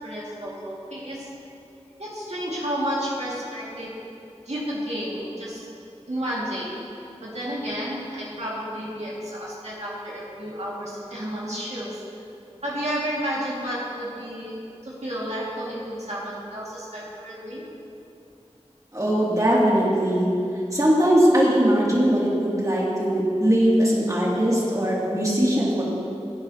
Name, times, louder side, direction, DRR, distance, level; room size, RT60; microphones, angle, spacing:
voice 1, 0.0-1.3 2.0-3.9 4.4-5.7 6.1-6.7 7.2-12.0 12.6-14.6 14.8-17.6, equal, 70° right, -7 dB, 2.2 m, -31 dB
voice 2, 18.9-20.3 20.7-25.8, equal, 30° right, -6 dB, 2.7 m, -20 dB
16.5 x 9.7 x 3.0 m, 2.7 s
wide cardioid pair, 40°, 12 cm